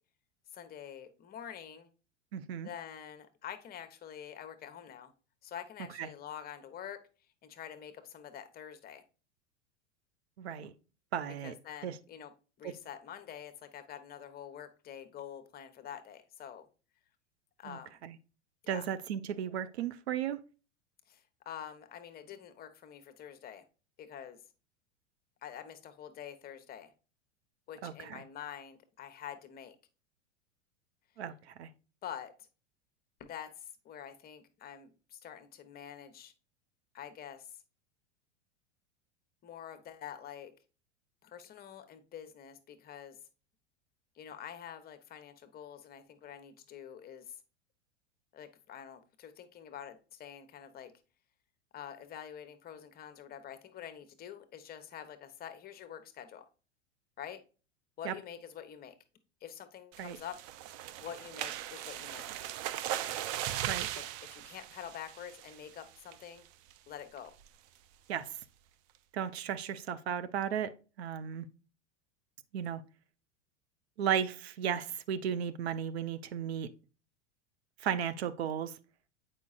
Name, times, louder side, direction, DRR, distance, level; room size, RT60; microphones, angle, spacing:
voice 1, 0.5-1.9 2.6-5.1 5.4-7.0 7.4-9.0 11.4-12.3 12.6-16.7 17.6-18.0 18.6-18.8 21.1-23.6 24.0-24.4 25.4-26.9 27.7-29.8 32.0-32.3 33.2-36.3 36.9-37.6 39.4-40.5 41.2-43.2 44.1-47.4 48.3-50.9 51.7-56.4 57.2-57.4 58.0-58.9 59.4-60.4 61.0-62.2 63.9-64.0 64.3-66.5 66.9-67.3, left 9 dB, 25° left, 0.8 m, -46 dB
voice 2, 2.3-2.7 6.0-6.1 10.4-10.7 11.1-11.5 11.8-12.0 12.6-12.7 17.6-18.2 18.7-20.4 27.8-28.2 31.2-31.7 58.0-58.1 60.0-60.2 63.7-63.9 68.1-68.4 69.1-70.7 71.0-71.5 72.5-72.8 74.0-76.7 77.8-78.8, right 9 dB, 60° right, 0.7 m, -35 dB
sound 1, 59.9-65.7 66.1-66.4 66.7-66.8 67.2-67.5, right 12 dB, 30° right, 0.4 m, -38 dB
8.2 x 5.0 x 2.4 m
figure-of-eight pair, 85°, 36 cm